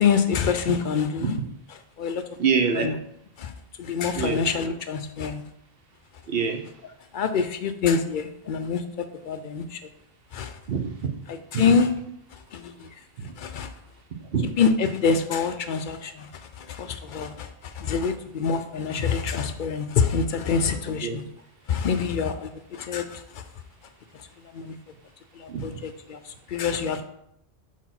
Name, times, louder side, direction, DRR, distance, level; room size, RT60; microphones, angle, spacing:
voice 1, 0.0-1.4 2.0-2.2 2.7-3.0 3.4-3.5 3.8-5.4 7.1-9.8 10.3-10.6 11.3-11.9 12.3-12.9 13.4-13.7 14.6-16.3 16.6-21.2 21.7-23.4 24.5-24.8 25.3-27.0, left 6 dB, 60° left, 9 dB, 0.6 m, -26 dB
voice 2, 2.4-2.9 4.1-4.4 6.3-6.6 10.7-11.1 11.6-11.7 14.3-14.5 21.0-21.2 25.5-25.7, right 6 dB, 60° right, 5 dB, 1.0 m, -25 dB
4.6 x 4.4 x 5.8 m, 0.76 s
omnidirectional pair, 1.1 m